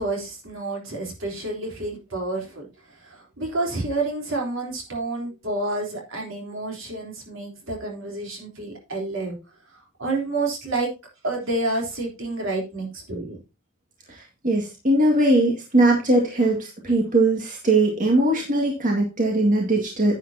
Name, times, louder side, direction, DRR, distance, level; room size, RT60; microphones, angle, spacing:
voice 1, 0.0-9.4 9.7-10.9 11.2-13.4 19.7-19.8, right 2 dB, 70° right, 0 dB, 3.6 m, -29 dB
voice 2, 14.1-20.2, right 2 dB, 40° right, 0 dB, 1.9 m, -20 dB
10.0 x 9.1 x 2.8 m, 0.28 s
head